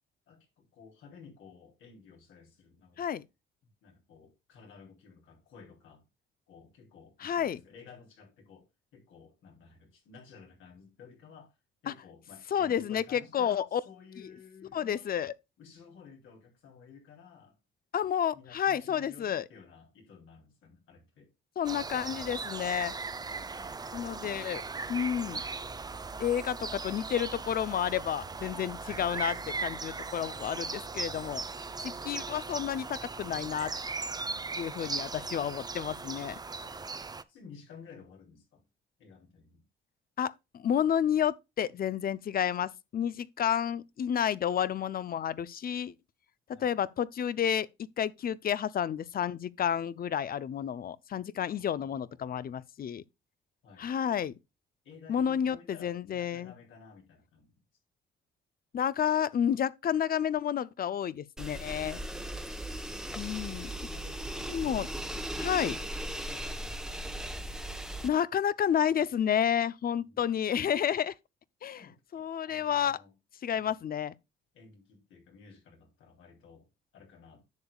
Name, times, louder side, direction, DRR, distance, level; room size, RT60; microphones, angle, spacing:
voice 1, 0.3-3.1 3.8-6.0 6.5-11.5 11.8-15.2 15.6-17.6 18.3-21.3 23.3-24.0 28.8-29.1 36.5-36.9 37.3-38.6 39.0-39.6 46.5-46.7 51.5-52.6 53.6-53.9 54.8-57.5 63.7-67.5 70.0-70.3 71.7-73.1 73.6-73.8 74.5-77.4, left 5 dB, 80° left, 3.4 m, -54 dB
voice 2, 7.2-7.6 11.9-12.0 12.5-13.8 14.7-15.3 17.9-19.4 21.6-22.9 23.9-24.6 24.9-25.4 26.2-31.4 31.8-33.7 34.6-36.4 40.2-45.9 46.6-47.7 48.0-53.0 53.8-54.3 55.1-56.5 58.7-62.0 63.2-63.7 64.5-64.9 65.4-65.7 68.0-71.1 71.6-71.9 72.1-73.0 73.4-74.1, left 9 dB, 50° left, 0.6 m, -30 dB
sound 1, 21.6-37.2, right 4 dB, 20° right, 0.6 m, -38 dB
sound 2, 61.4-68.1, right 1 dB, 5° right, 1.0 m, -38 dB
10.5 x 7.0 x 2.3 m
cardioid pair, 90°, 20 cm